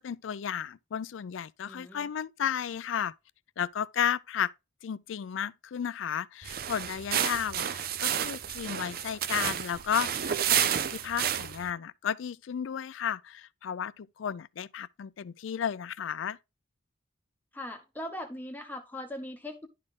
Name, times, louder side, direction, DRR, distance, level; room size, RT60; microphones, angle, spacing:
voice 1, 0.0-3.1 3.6-4.5 4.8-16.4, left 8 dB, 75° left, 0.4 m, -33 dB
voice 2, 1.6-2.1 17.5-19.7, left 1 dB, 10° left, 0.8 m, -40 dB
sound 1, 6.4-11.7, right 9 dB, 50° right, 0.5 m, -30 dB
11.0 x 4.2 x 3.6 m
head